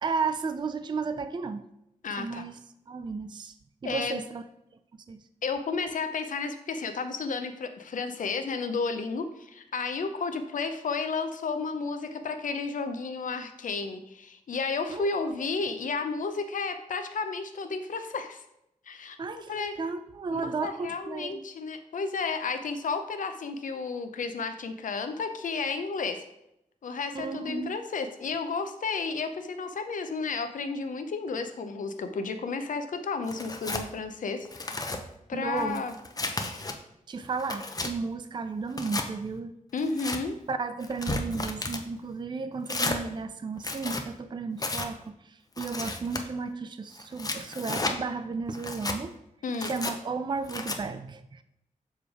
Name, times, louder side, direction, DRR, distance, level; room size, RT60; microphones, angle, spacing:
voice 1, 0.0-1.6 2.2-2.6 2.9-3.5 3.8-4.4 5.1-5.2 14.9-15.3 19.2-21.4 27.1-27.7 35.3-35.8 37.1-39.5 40.5-49.1 49.6-51.4, right 4 dB, 35° right, 11 dB, 0.4 m, -33 dB
voice 2, 2.0-2.4 3.8-4.2 5.4-18.4 18.9-19.2 19.5-19.7 20.3-26.2 26.8-34.7 35.3-35.9 39.7-40.3 49.4-49.7, left 4 dB, 75° left, 8 dB, 0.6 m, -32 dB
Tearing, 33.3-33.9 34.4-35.0 35.6-36.7 37.2-37.9 38.7-39.1 39.8-40.2 40.8-41.8 42.7-43.0 43.6-44.0 44.6-44.9 45.6-46.2 46.9-48.0 48.5-49.0 49.5-49.9 50.5-50.8, left 2 dB, 25° left, 0.6 m, -33 dB
7.1 x 3.3 x 4.8 m, 0.82 s
wide cardioid pair, 85°, 14 cm